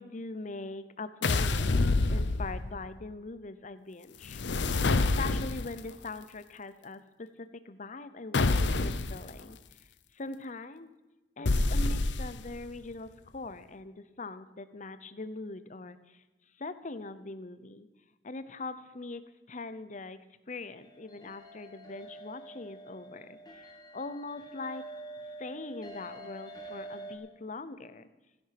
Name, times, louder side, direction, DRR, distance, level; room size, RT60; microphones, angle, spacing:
voice 1, 0.0-4.4 4.9-9.6 10.1-10.9 11.4-16.2 16.6-17.9 18.2-24.9 25.4-28.1, left 3 dB, 45° left, 13 dB, 0.8 m, -42 dB
sound 1, 1.2-2.8 4.3-5.8 8.3-9.2 11.5-12.6, left 3 dB, 85° left, 0.7 m, -27 dB
sound 2, 20.7-27.2, right 2 dB, 25° left, 2.3 m, -46 dB
15.5 x 10.5 x 5.9 m, 1.1 s
head